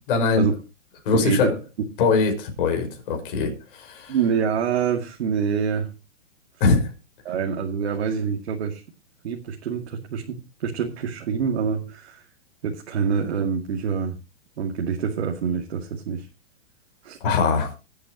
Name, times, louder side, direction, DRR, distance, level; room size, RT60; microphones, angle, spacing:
voice 1, 0.1-0.4 1.1-1.5 2.0-4.2 6.6-6.9 17.2-17.7, left 4 dB, 45° left, 3 dB, 5.4 m, -22 dB
voice 2, 1.1-1.5 4.1-5.9 7.2-8.8 9.2-12.2 12.6-14.1 14.6-16.3 17.0-17.2, right 6 dB, 60° right, 1 dB, 2.3 m, -26 dB
22.0 x 8.4 x 3.0 m, 0.30 s
hypercardioid pair, 160°, 37 cm